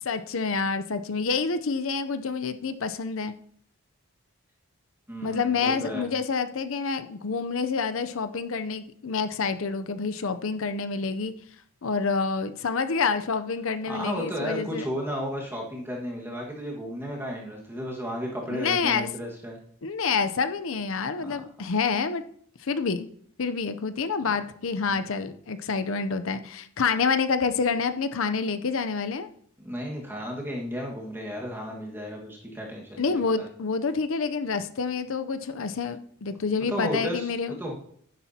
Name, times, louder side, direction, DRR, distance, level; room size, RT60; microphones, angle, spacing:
voice 1, 0.0-3.3 5.2-11.3 11.8-14.9 18.5-19.1 19.8-22.2 22.6-23.1 23.4-29.3 33.0-37.5, left 5 dB, 60° left, 10 dB, 0.6 m, -28 dB
voice 2, 5.1-6.1 13.8-19.6 21.2-21.3 24.2-24.3 29.6-33.5 36.7-37.7, equal, 10° right, -2 dB, 1.6 m, -33 dB
11.0 x 10.5 x 2.8 m, 0.62 s
head